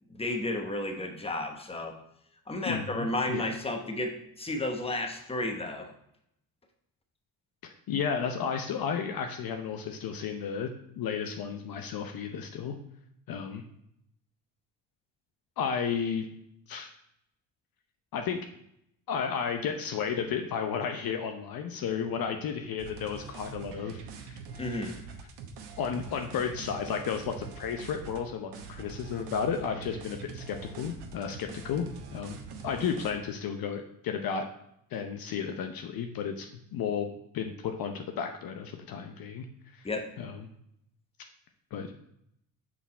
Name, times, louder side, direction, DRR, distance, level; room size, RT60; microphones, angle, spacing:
voice 1, 0.1-1.9 2.5-5.9 24.6-24.9 39.8-40.0, left 1 dB, 15° left, 4 dB, 1.1 m, -32 dB
voice 2, 2.6-3.4 7.9-10.7 11.0-12.8 13.3-13.6 15.6-16.3 16.7-16.9 18.1-18.4 19.1-25.0 25.8-31.9 32.1-32.4 32.6-34.5 34.9-37.1 37.3-39.5 39.7-39.9 40.2-40.5 41.7-41.9, left 7 dB, 55° left, 5 dB, 0.7 m, -33 dB
sound 1, 22.8-28.2 28.5-33.1, right 5 dB, 70° right, 1.0 m, -44 dB
6.0 x 4.1 x 4.2 m, 0.75 s
supercardioid pair, 65°, 42 cm